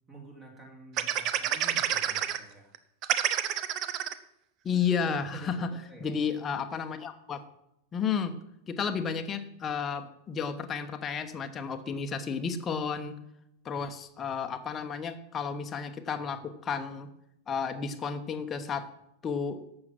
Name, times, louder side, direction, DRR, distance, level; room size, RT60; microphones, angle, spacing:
voice 1, 0.1-2.7 5.3-6.1, right 2 dB, 20° right, 0 dB, 2.9 m, -49 dB
sound 1, 1.0-2.4 2.7-2.8 3.0-4.1 4.7-4.8 5.1-5.4, right 10 dB, 35° right, 0.8 m, -28 dB
voice 2, 4.6-5.7 6.0-7.4 7.9-8.3 8.7-13.1 13.6-17.1 17.5-18.9 19.2-19.6, left 6 dB, 25° left, 7 dB, 1.1 m, -32 dB
12.0 x 7.8 x 6.0 m, 0.80 s
figure-of-eight pair, 90°, 0 cm